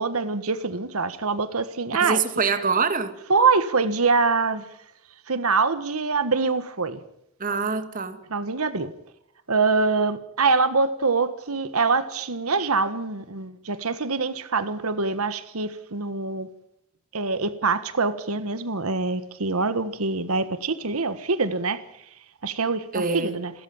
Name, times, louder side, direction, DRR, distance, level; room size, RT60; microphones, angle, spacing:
voice 1, 0.0-2.2 3.3-4.7 5.3-7.0 8.3-8.9 9.5-16.5 17.1-21.8 22.4-23.5, right 4 dB, 85° right, 1.5 m, -24 dB
voice 2, 2.0-3.1 7.4-8.2 22.9-23.3, right 4 dB, 40° right, 2.1 m, -25 dB
29.0 x 13.5 x 8.9 m
head